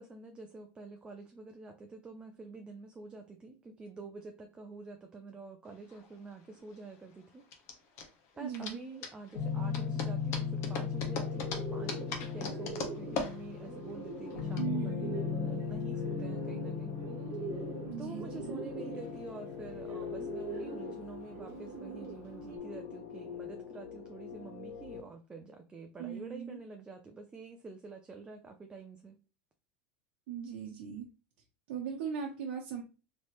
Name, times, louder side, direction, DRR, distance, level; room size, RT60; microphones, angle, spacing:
voice 1, 0.0-7.5 8.0-17.0 17.6-17.7 18.0-29.2, right 3 dB, 15° right, 4 dB, 0.4 m, -48 dB
sound 1, 5.7-14.6, left 4 dB, 45° left, 0.9 m, -41 dB
voice 2, 8.4-8.8 14.6-15.2 17.8-18.6 26.0-26.6 30.3-31.1 31.7-32.8, right 7 dB, 70° right, -1 dB, 0.8 m, -38 dB
sound 2, 9.3-25.0, left 6 dB, 70° left, 1.4 m, -38 dB
Bird, 10.9-22.6, right 4 dB, 45° right, 1.1 m, -44 dB
3.1 x 2.8 x 3.0 m, 0.33 s
supercardioid pair, 135°, 6 cm